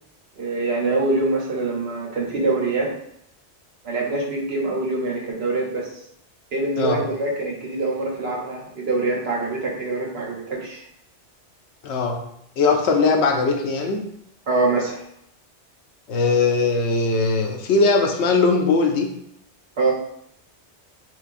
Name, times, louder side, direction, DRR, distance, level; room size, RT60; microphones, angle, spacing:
voice 1, 0.4-2.9 3.8-6.0 6.5-10.8 14.5-15.0 19.8-19.9, right 3 dB, 65° right, -2 dB, 1.1 m, -24 dB
voice 2, 11.8-12.2 12.6-14.0 16.1-19.1, left 4 dB, 75° left, 3 dB, 0.8 m, -20 dB
3.6 x 3.1 x 2.5 m, 0.75 s
omnidirectional pair, 1.2 m